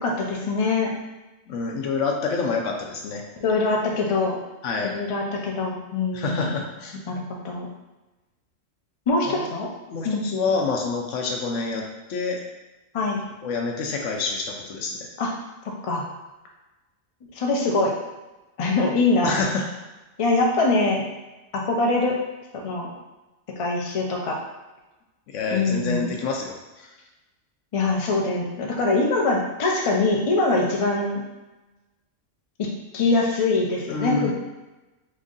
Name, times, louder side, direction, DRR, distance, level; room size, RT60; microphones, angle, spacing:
voice 1, 0.0-0.9 3.4-4.4 4.9-6.6 7.1-7.7 9.1-9.7 10.0-10.3 12.9-13.2 15.2-15.3 15.8-16.1 17.4-17.9 18.6-19.4 20.2-21.0 21.5-22.2 22.5-22.9 23.6-24.4 25.5-26.1 27.7-31.2 32.6-32.7 32.9-34.3, left 3 dB, 50° left, -1 dB, 0.4 m, -23 dB
voice 2, 1.5-3.2 4.6-4.9 6.1-7.0 9.3-9.5 9.9-11.8 12.1-12.4 13.4-15.1 19.2-19.7 25.3-26.9 33.9-34.3, left 4 dB, 75° left, 1 dB, 0.9 m, -27 dB
3.1 x 2.6 x 3.7 m, 1.1 s
omnidirectional pair, 1.3 m